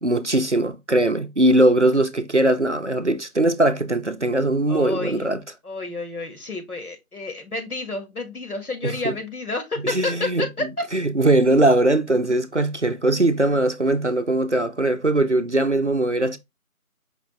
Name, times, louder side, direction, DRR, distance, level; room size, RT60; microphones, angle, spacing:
voice 1, 0.0-5.4 8.8-9.1 9.8-10.4 10.9-16.4, right 1 dB, 55° right, 0.5 m, -20 dB
voice 2, 4.7-5.3 5.6-10.8, left 3 dB, 80° left, 1.8 m, -30 dB
5.0 x 3.1 x 3.0 m
figure-of-eight pair, 170°, 44 cm